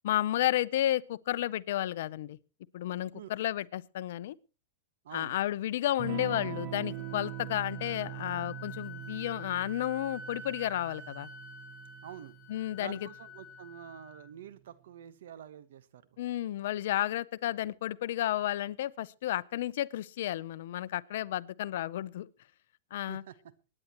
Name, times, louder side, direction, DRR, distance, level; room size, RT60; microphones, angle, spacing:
voice 1, 0.0-2.4 2.7-4.4 5.1-11.3 12.5-13.0 16.2-22.3 22.9-23.2, left 13 dB, 65° left, 0.6 m, -32 dB
voice 2, 5.0-5.4 12.0-12.4 12.8-16.2 23.1-23.3, right 10 dB, 75° right, 1.1 m, -47 dB
Electric guitar / Strum, 6.0-14.3, right 19 dB, 50° right, 0.9 m, -43 dB
Wind instrument woodwind instrument, 6.6-14.3, left 2 dB, 30° left, 1.9 m, -48 dB
24.0 x 9.9 x 3.0 m
hypercardioid pair, 135°, 0 cm